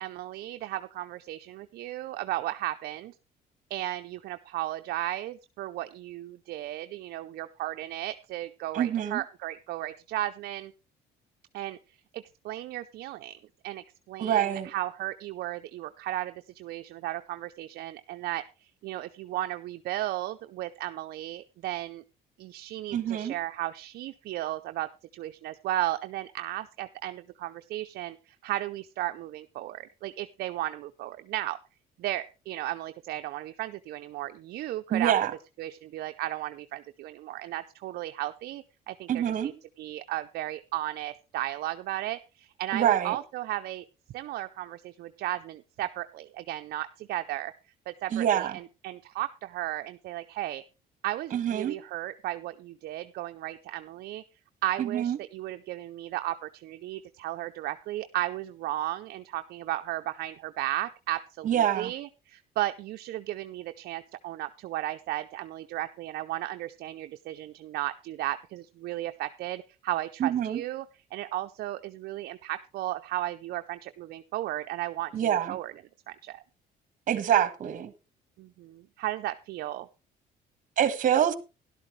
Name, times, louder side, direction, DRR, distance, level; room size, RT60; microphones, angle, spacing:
voice 1, 0.0-3.1 3.7-10.7 11.5-11.8 12.1-13.4 13.6-18.4 18.8-22.0 22.4-31.6 32.0-35.1 35.6-39.5 39.8-43.8 44.1-47.5 47.9-50.6 51.0-54.2 54.6-70.9 71.1-75.7 76.1-76.4 78.4-79.9, right 15 dB, 70° right, 0.5 m, -35 dB
voice 2, 8.7-9.2 14.2-14.7 22.9-23.3 34.9-35.3 39.1-39.5 42.7-43.2 48.1-48.6 51.3-51.8 54.8-55.2 61.4-61.9 70.2-70.6 75.1-75.6 77.1-77.9 80.8-81.3, right 10 dB, 50° right, 1.3 m, -25 dB
13.0 x 11.5 x 3.2 m
cardioid pair, 110°, 17 cm